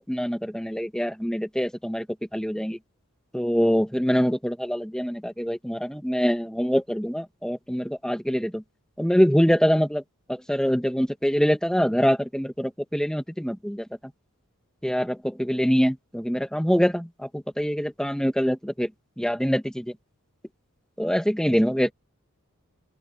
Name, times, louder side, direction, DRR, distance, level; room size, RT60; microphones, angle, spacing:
voice 1, 0.0-2.1 2.3-2.8 3.3-8.6 9.0-10.0 10.3-13.9 14.8-18.9 19.2-19.9 21.0-21.9, equal, 5° left, 1.8 m, -24 dB
open air
head